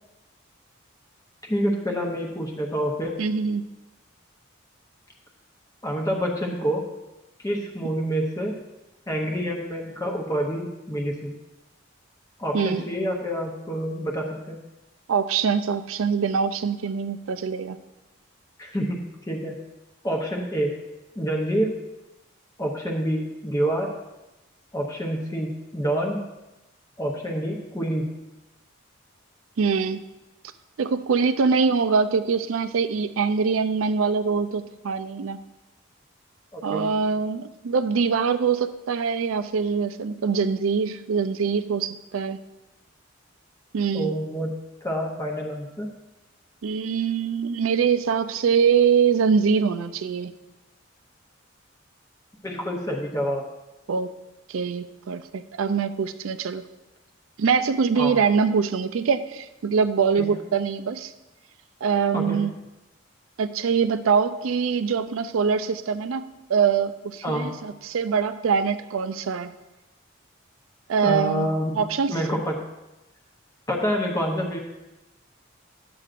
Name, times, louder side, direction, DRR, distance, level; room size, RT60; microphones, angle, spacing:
voice 1, 1.4-3.1 5.8-6.8 7.4-8.5 9.1-11.3 12.4-14.6 18.6-19.0 19.3-19.5 20.0-20.7 21.2-21.7 22.6-23.9 24.7-26.2 27.0-28.1 36.5-36.8 43.9-44.5 44.8-45.9 52.4-53.4 58.0-58.1 60.2-60.3 62.1-62.4 67.2-67.5 71.0-71.8 72.1-72.5 73.7-74.6, equal, 15° left, 0 dB, 0.7 m, -27 dB
voice 2, 3.2-3.6 12.5-12.8 15.1-17.8 29.6-30.0 30.8-35.4 36.6-42.4 43.7-44.1 46.6-50.3 53.9-54.1 54.5-56.6 57.4-61.1 61.8-62.5 63.4-66.2 66.5-69.5 70.9-71.5 71.8-72.2, right 6 dB, 80° right, 12 dB, 0.4 m, -23 dB
11.0 x 7.7 x 2.5 m, 1.0 s
head